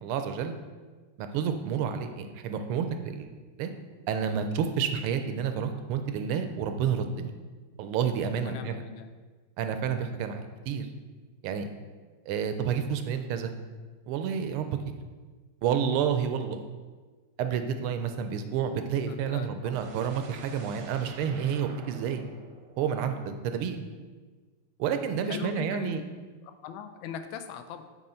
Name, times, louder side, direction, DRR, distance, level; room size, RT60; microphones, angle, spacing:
voice 1, 0.0-0.6 1.2-3.3 3.6-3.7 4.1-7.3 7.8-8.8 9.6-10.9 11.4-11.7 12.3-13.5 14.1-14.8 15.6-16.6 17.4-22.2 22.8-23.8 24.8-26.0, right 7 dB, 80° right, 7 dB, 1.5 m, -29 dB
voice 2, 8.4-9.1 19.1-19.7 25.2-26.1 26.4-27.8, left 8 dB, 75° left, 8 dB, 1.3 m, -40 dB
sound 1, 19.7-23.7, right 4 dB, 65° right, 1.2 m, -49 dB
8.5 x 3.4 x 4.3 m, 1.4 s
omnidirectional pair, 2.4 m